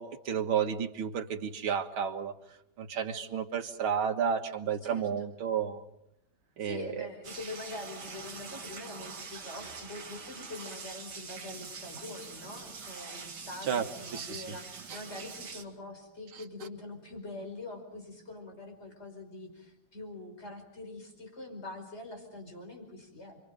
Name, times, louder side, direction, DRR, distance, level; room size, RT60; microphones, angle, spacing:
voice 1, 0.0-2.3 2.8-5.8 6.6-7.1 13.7-13.8 14.1-14.4, right 7 dB, 75° right, 5 dB, 2.4 m, -31 dB
voice 2, 4.8-5.3 6.6-23.4, left 2 dB, 30° left, 4 dB, 5.3 m, -44 dB
sound 1, 7.2-15.6, right 5 dB, 50° right, 2.5 m, -44 dB
29.5 x 24.0 x 5.2 m, 0.79 s
omnidirectional pair, 2.4 m